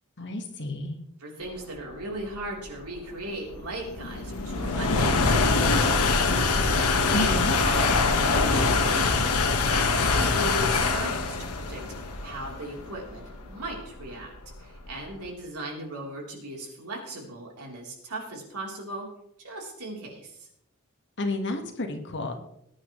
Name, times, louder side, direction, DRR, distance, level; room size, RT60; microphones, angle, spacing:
voice 1, 0.2-1.0 7.1-7.5 21.2-22.3, left 2 dB, 55° left, 4 dB, 1.7 m, -30 dB
voice 2, 1.2-14.3 14.6-19.1 19.4-20.5, right 1 dB, 90° right, -1 dB, 3.7 m, -38 dB
sound 1, 1.8-15.1, left 3 dB, 90° left, 1.4 m, -24 dB
19.5 x 9.7 x 3.2 m, 0.75 s
head